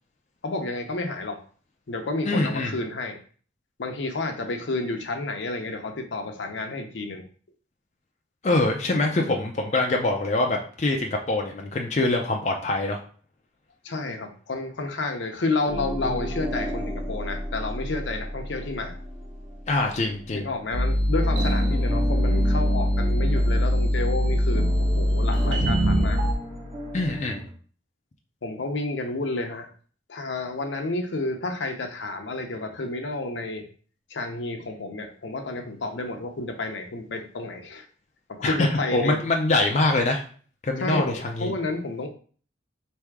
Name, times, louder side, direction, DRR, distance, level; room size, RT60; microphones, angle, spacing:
voice 1, 0.4-1.4 1.9-3.2 3.8-7.3 9.2-9.4 13.8-19.0 20.3-26.2 28.4-29.7 30.1-33.7 34.1-37.9 38.3-39.2 40.8-42.1, left 2 dB, 75° left, 4 dB, 0.7 m, -30 dB
voice 2, 2.3-2.7 8.4-13.0 19.7-20.5 26.9-27.4 38.4-40.2 40.6-41.5, left 2 dB, 35° left, 1 dB, 0.4 m, -24 dB
sound 1, 15.6-20.9 21.2-27.5, equal, 30° right, 1.2 m, -33 dB
sound 2, 20.7-26.3, equal, 80° right, 0.9 m, -22 dB
3.4 x 2.7 x 4.7 m, 0.44 s
head